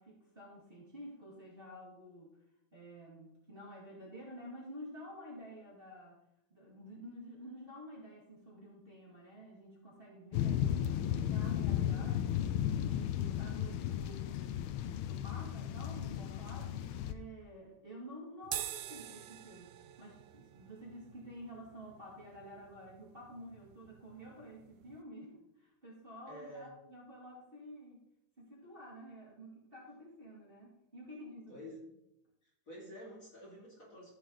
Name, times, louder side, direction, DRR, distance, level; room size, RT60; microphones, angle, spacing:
voice 1, 0.0-2.3 2.7-6.2 6.5-12.5 12.8-14.7 15.1-28.0 28.4-31.7, equal, 25° right, -5 dB, 2.4 m, -50 dB
sound 1, 10.3-17.1, left 10 dB, 80° left, 1.4 m, -34 dB
sound 2, 18.4-25.0, right 12 dB, 80° right, 1.0 m, -47 dB
voice 2, 26.3-26.7 31.5-31.8 32.4-34.2, equal, 40° left, -5 dB, 3.0 m, -49 dB
14.0 x 4.8 x 3.9 m, 0.84 s
omnidirectional pair, 2.4 m